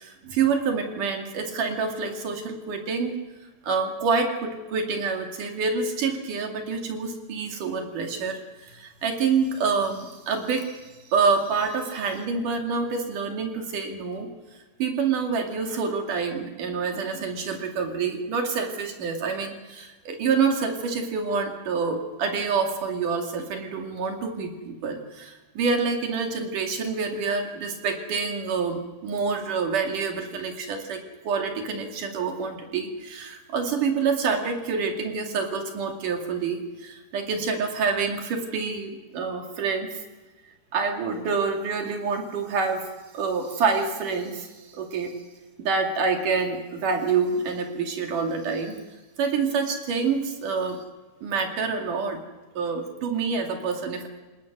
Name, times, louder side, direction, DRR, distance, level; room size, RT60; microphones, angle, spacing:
voice 1, 0.0-3.2 3.6-10.8 11.1-14.3 14.8-39.9 40.7-42.9 43.1-45.2 45.6-48.8 49.2-50.8 51.2-52.2 52.6-54.1, right 5 dB, 55° right, 3 dB, 3.7 m, -27 dB
28.0 x 19.0 x 6.2 m, 1.2 s
omnidirectional pair, 4.9 m